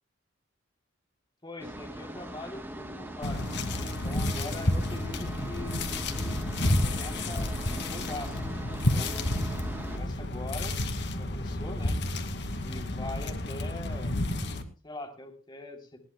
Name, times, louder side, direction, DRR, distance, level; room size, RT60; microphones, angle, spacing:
voice 1, 1.4-5.9 6.2-6.4 6.8-8.6 8.9-9.4 9.9-10.8 11.2-12.0 12.6-14.2 14.8-16.0, left 2 dB, 25° left, 4 dB, 3.2 m, -42 dB
sound 1, 1.6-10.0, right 1 dB, 10° right, 2.4 m, -41 dB
sound 2, 3.2-14.6, left 1 dB, 60° left, 2.2 m, -30 dB
20.5 x 17.5 x 2.2 m, 0.35 s
head